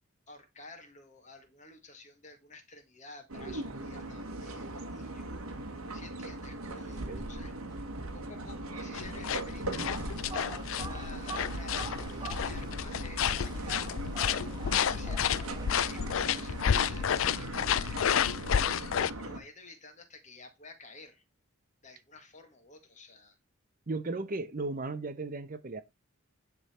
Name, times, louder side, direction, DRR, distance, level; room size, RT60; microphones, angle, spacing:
voice 1, 0.3-5.5 5.9-7.8 8.1-10.1 10.6-14.3 14.7-18.0 19.2-21.2 21.8-23.4, left 3 dB, 35° left, 1.7 m, -52 dB
sound 1, 3.3-19.4, right 2 dB, 90° right, 1.3 m, -39 dB
sound 2, 8.9-19.1, left 8 dB, 65° left, 0.4 m, -31 dB
sound 3, 9.5-17.2, right 5 dB, 20° right, 0.4 m, -46 dB
voice 2, 23.9-25.8, right 3 dB, 40° right, 0.8 m, -35 dB
10.0 x 3.7 x 4.3 m
head